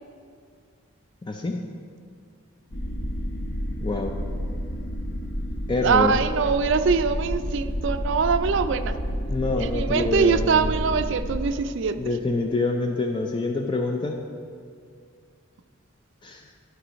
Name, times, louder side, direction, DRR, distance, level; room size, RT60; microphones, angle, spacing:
voice 1, 1.3-1.7 3.8-4.1 5.7-6.2 9.3-10.7 12.0-14.2 16.2-16.4, left 2 dB, 20° left, 3 dB, 0.3 m, -26 dB
sound 1, 2.7-11.5, equal, 55° left, 0.8 m, -30 dB
voice 2, 5.8-9.0 9.6-12.0, right 5 dB, 60° right, 9 dB, 0.4 m, -23 dB
11.5 x 4.7 x 5.1 m, 2.2 s
head